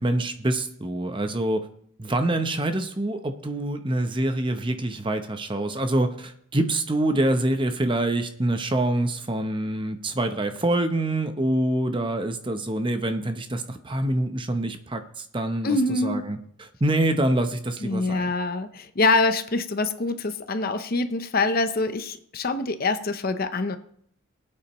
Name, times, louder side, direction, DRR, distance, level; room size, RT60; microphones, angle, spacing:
voice 1, 0.0-1.7 2.0-18.3, right 1 dB, 25° right, 7 dB, 0.8 m, -26 dB
voice 2, 15.6-16.2 17.8-23.8, left 3 dB, 45° left, 9 dB, 0.7 m, -25 dB
21.0 x 8.6 x 3.1 m, 0.66 s
head